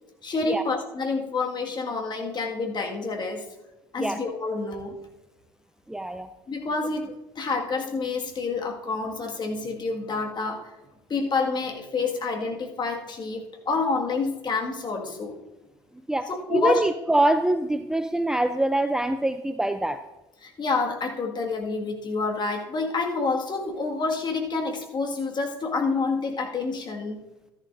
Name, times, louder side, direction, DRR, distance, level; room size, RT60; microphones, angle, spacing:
voice 1, 0.2-3.5 3.9-5.0 6.5-10.7 11.1-15.4 16.3-16.8 20.4-27.2, left 4 dB, 35° left, 1 dB, 1.9 m, -28 dB
voice 2, 5.9-6.3 16.1-20.0, right 1 dB, 5° right, 9 dB, 0.5 m, -24 dB
13.0 x 11.5 x 2.6 m, 0.98 s
hypercardioid pair, 60°, 13 cm